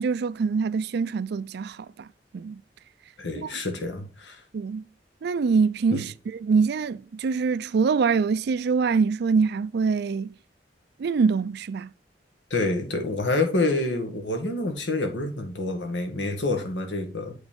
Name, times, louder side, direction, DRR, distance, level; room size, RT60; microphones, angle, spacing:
voice 1, 0.0-2.1 2.3-2.6 3.4-3.5 4.5-4.9 5.2-10.3 11.0-11.9, right 5 dB, 65° right, 0.4 m, -24 dB
voice 2, 3.2-4.4 5.9-6.1 12.5-17.3, left 2 dB, 90° left, 1.7 m, -27 dB
8.3 x 4.1 x 5.1 m
head